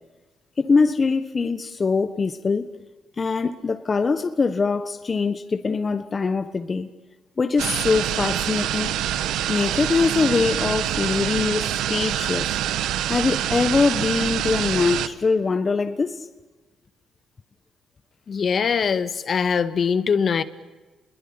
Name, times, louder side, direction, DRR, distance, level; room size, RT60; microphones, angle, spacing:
voice 1, 0.6-2.7 3.2-6.9 7.4-8.9 9.5-12.6 13.1-16.3, left 4 dB, 35° left, 1.4 m, -23 dB
sound 1, 7.6-15.1, right 11 dB, 85° right, 1.3 m, -25 dB
voice 2, 18.3-20.4, left 6 dB, 50° left, 1.7 m, -22 dB
29.5 x 22.0 x 8.9 m
cardioid pair, 90°, 0 cm